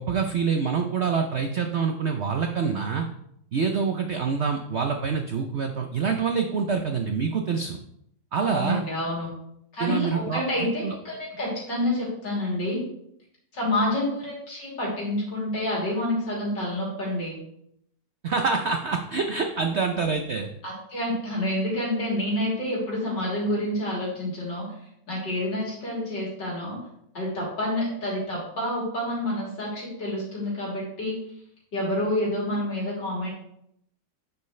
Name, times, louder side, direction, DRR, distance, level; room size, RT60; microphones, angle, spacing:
voice 1, 0.0-3.1 3.5-7.8 8.3-8.8 9.8-11.0 18.2-20.5, right 5 dB, 90° right, 5 dB, 0.5 m, -26 dB
voice 2, 8.4-9.3 9.7-12.8 13.5-17.4 20.6-24.7 25.1-26.8 27.1-31.2 31.7-33.3, left 1 dB, 70° left, -5 dB, 3.8 m, -28 dB
9.4 x 7.0 x 3.2 m, 0.74 s
omnidirectional pair, 2.0 m